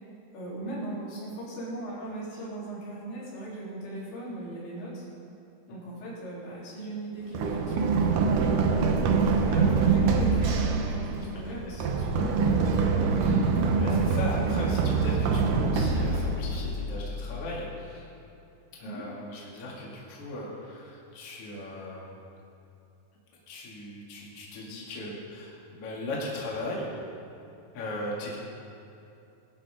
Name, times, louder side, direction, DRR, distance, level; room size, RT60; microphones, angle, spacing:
voice 1, 0.3-5.1 5.7-8.2 8.9-12.6 18.8-19.0, right 1 dB, 85° left, -7 dB, 5.9 m, -38 dB
Run, 7.3-17.1, right 4 dB, 80° right, 1.8 m, -25 dB
voice 2, 13.1-13.4 13.7-18.1 18.7-22.1 23.5-26.9 27.7-28.4, left 1 dB, 40° left, -4 dB, 2.8 m, -38 dB
21.5 x 11.5 x 3.7 m, 2.8 s
omnidirectional pair, 5.0 m